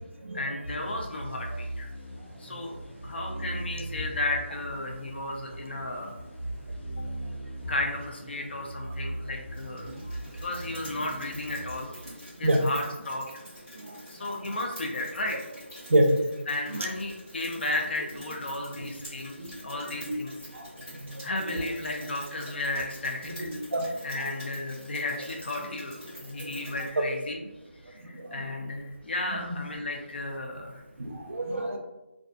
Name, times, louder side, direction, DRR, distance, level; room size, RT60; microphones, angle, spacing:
voice 1, 0.3-1.9 2.4-2.7 3.0-6.1 7.2-7.3 7.7-10.1 10.4-13.3 14.1-15.4 16.5-20.3 21.2-23.5 24.0-27.4 27.8-30.8, left 2 dB, 55° left, 0 dB, 0.5 m, -34 dB
sound 1, 0.6-12.5, right 1 dB, 70° left, 1.1 m, -39 dB
Rain, 9.5-26.9, equal, 10° left, 0.7 m, -47 dB
voice 2, 21.3-21.6 23.4-23.9 29.3-29.5 31.0-31.8, right 1 dB, 75° right, 2 dB, 0.5 m, -26 dB
2.4 x 2.3 x 2.3 m, 0.98 s
figure-of-eight pair, 170°, 7 cm